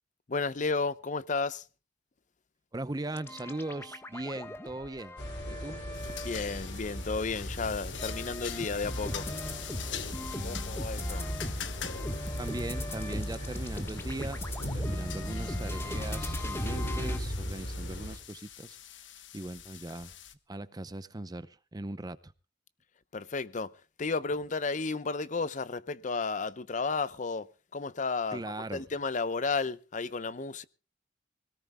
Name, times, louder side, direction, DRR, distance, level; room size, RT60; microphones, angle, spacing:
voice 1, 0.3-1.7 6.2-9.3 10.4-11.3 23.1-23.7 24.0-30.7, left 4 dB, 40° left, 0.7 m, -33 dB
voice 2, 2.7-5.2 5.5-5.8 12.4-14.4 14.7-19.1 19.3-20.1 20.5-22.3 28.3-28.8, right 2 dB, 20° right, 0.6 m, -39 dB
sound 1, 3.1-7.2 7.7-17.2, left 1 dB, 15° left, 1.2 m, -39 dB
sound 2, 5.2-18.2, equal, 70° left, 3.0 m, -38 dB
sound 3, 5.9-20.3, left 10 dB, 85° left, 1.1 m, -45 dB
24.0 x 18.0 x 2.2 m
head